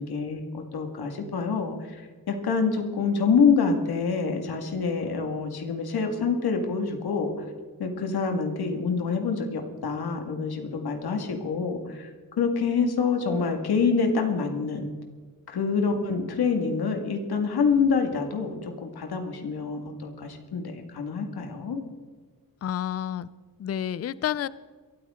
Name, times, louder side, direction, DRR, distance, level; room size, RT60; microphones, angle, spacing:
voice 1, 0.0-7.5 7.8-12.1 12.4-14.9 15.5-21.8, left 5 dB, 90° left, 4 dB, 2.1 m, -26 dB
voice 2, 22.6-23.3 23.6-24.5, left 10 dB, 40° left, 18 dB, 0.4 m, -29 dB
22.5 x 13.0 x 3.8 m, 1.5 s
wide cardioid pair, 170°, 37 cm